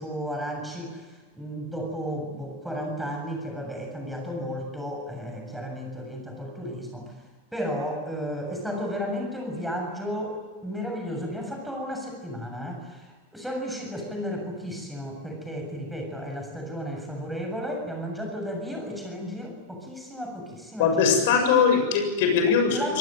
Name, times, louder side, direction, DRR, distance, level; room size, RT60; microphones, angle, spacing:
voice 1, 0.0-7.1 7.5-10.4 10.6-21.1 22.4-23.0, equal, 5° right, 1 dB, 7.4 m, -33 dB
voice 2, 20.8-22.8, left 6 dB, 50° left, 5 dB, 7.3 m, -21 dB
27.5 x 18.5 x 9.2 m, 1.3 s
figure-of-eight pair, 90°, 0 cm